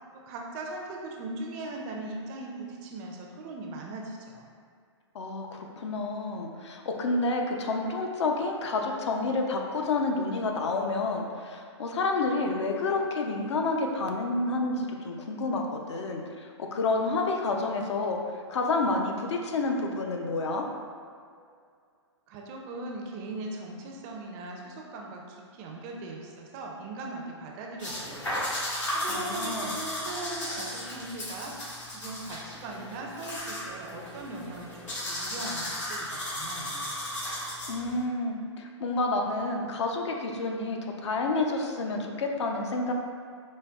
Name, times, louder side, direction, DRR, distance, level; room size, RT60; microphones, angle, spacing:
voice 1, 0.1-4.4 22.3-28.3 28.6-34.7 35.0-37.0, right 2 dB, 30° right, 0 dB, 0.4 m, -39 dB
voice 2, 5.1-18.2 18.5-20.7 29.1-29.7 37.7-42.9, left 3 dB, 70° left, 2 dB, 0.5 m, -29 dB
sound 1, 27.8-38.0, left 1 dB, 85° left, 1.5 m, -35 dB
5.0 x 2.0 x 2.3 m, 2.2 s
hypercardioid pair, 125°, 15 cm